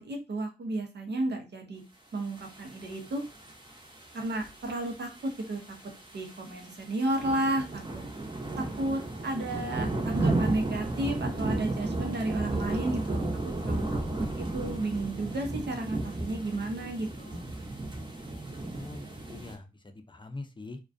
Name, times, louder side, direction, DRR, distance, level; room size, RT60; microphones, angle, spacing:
voice 1, 0.0-1.8 2.1-3.2 4.1-5.1 5.5-5.6 6.1-7.8 8.6-13.2 13.6-13.8 14.1-17.4, right 2 dB, 80° right, 3 dB, 0.7 m, -32 dB
sound 1, 2.4-19.5, right 2 dB, 25° right, 0.7 m, -34 dB
voice 2, 18.7-20.8, left 2 dB, 30° left, 7 dB, 0.4 m, -43 dB
2.3 x 2.2 x 2.5 m, 0.27 s
cardioid pair, 45°, 17 cm